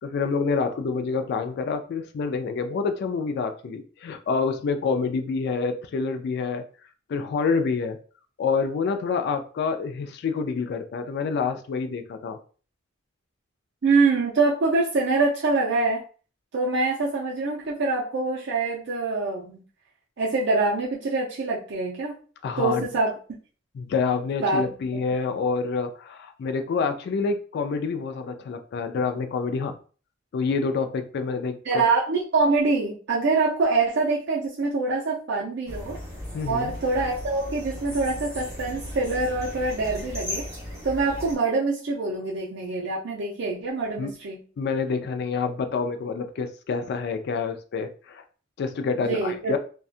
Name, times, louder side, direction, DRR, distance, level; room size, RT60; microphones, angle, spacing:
voice 1, 0.0-6.6 7.1-8.0 8.4-12.4 22.4-22.8 23.7-29.8 30.3-31.8 36.3-36.7 44.0-44.1 44.6-48.2 48.6-49.6, left 5 dB, 55° left, 7 dB, 0.3 m, -27 dB
voice 2, 13.8-16.0 16.5-19.6 20.2-22.2 22.6-23.1 24.4-24.6 31.7-36.0 36.5-40.4 40.8-44.4 49.0-49.6, right 3 dB, 60° right, -4 dB, 0.5 m, -25 dB
sound 1, 35.7-41.4, left 1 dB, 15° right, 1.0 m, -36 dB
2.6 x 2.2 x 2.4 m, 0.39 s
head